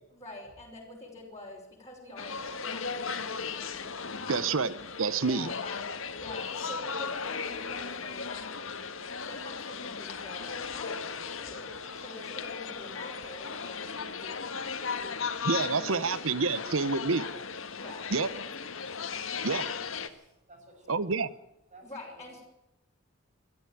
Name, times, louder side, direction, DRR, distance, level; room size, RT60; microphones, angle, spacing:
voice 1, 0.1-3.8 4.2-4.6 5.1-8.7 9.2-11.7 11.9-14.5 17.1-17.4 17.8-18.1 21.8-22.4, left 2 dB, 15° left, -5 dB, 5.4 m, -46 dB
sound 1, 2.2-20.1, left 5 dB, 75° left, 1.6 m, -37 dB
voice 2, 4.3-4.7 5.0-5.5 15.4-17.2 18.1-18.3 19.4-19.7 20.9-21.3, right 4 dB, 70° right, 17 dB, 0.9 m, -28 dB
voice 3, 14.7-15.2 15.6-16.0 19.2-19.8 20.1-21.2 21.7-22.3, right 1 dB, 40° right, 3 dB, 6.8 m, -54 dB
22.5 x 13.5 x 9.0 m, 0.90 s
head